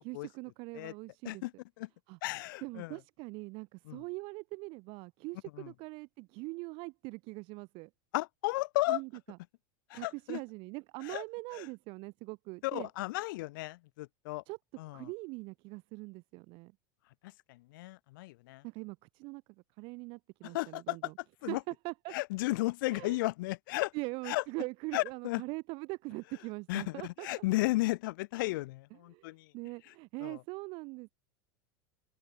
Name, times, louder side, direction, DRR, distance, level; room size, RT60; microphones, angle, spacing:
voice 1, 0.0-1.4 2.1-2.2 2.6-7.9 8.9-9.4 9.9-12.9 14.5-14.6 14.9-16.7 18.6-19.4 19.8-21.1 21.5-22.1 22.9-23.2 23.9-27.4 28.9-31.1, right 26 dB, 50° right, 2.4 m, -42 dB
voice 2, 2.2-2.9 3.9-4.0 5.6-5.7 8.1-9.0 9.9-10.4 11.0-11.2 11.5-11.6 12.6-14.4 14.8-15.1 17.5-18.6 20.4-21.1 21.4-21.6 22.1-23.9 24.3-24.4 24.9-25.4 26.7-29.5 30.2-30.4, left 20 dB, 70° left, 1.0 m, -34 dB
open air
supercardioid pair, 135°, 11 cm